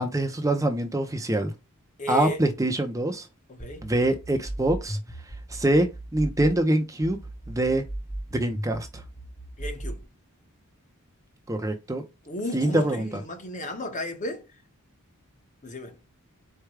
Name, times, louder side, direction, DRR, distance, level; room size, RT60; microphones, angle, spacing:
voice 1, 0.0-1.5 2.1-3.3 3.8-5.0 5.5-7.2 7.5-7.8 8.3-9.0 11.5-12.0 12.5-13.2, right 1 dB, 15° right, 0.6 m, -24 dB
voice 2, 2.0-2.4 3.5-3.9 9.6-10.0 12.3-14.5 15.6-16.0, left 1 dB, 35° left, 1.1 m, -34 dB
sound 1, 3.6-6.6 7.0-10.0, right 1 dB, 5° left, 0.9 m, -36 dB
4.6 x 2.3 x 4.8 m
head